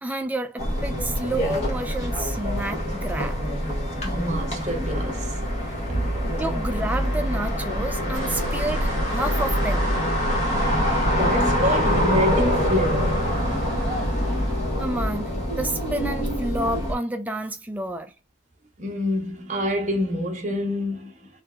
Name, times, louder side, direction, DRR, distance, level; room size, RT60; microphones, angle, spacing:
voice 1, 0.0-3.4 6.4-9.9 14.8-18.1, right 1 dB, 10° right, 0.3 m, -30 dB
sound 1, 0.6-16.9, equal, 30° left, 1.2 m, -25 dB
voice 2, 4.0-6.2 11.0-13.2 18.8-21.3, equal, 35° right, 0.8 m, -27 dB
sound 2, 8.1-14.9, right 1 dB, 75° right, 0.7 m, -32 dB
3.4 x 3.0 x 2.3 m
head